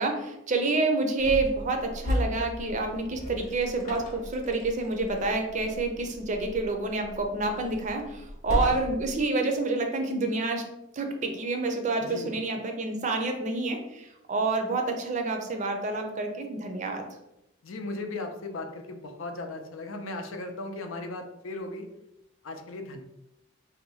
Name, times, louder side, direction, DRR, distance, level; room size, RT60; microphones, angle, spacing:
voice 1, 0.0-10.6 10.9-17.0, right 3 dB, 40° right, 4 dB, 0.5 m, -28 dB
sound 1, 1.2-9.2, left 1 dB, 40° left, 0.8 m, -35 dB
voice 2, 12.0-12.4 17.6-21.9 22.4-23.0, left 2 dB, 90° left, 5 dB, 0.5 m, -37 dB
2.7 x 2.2 x 4.0 m, 0.88 s
head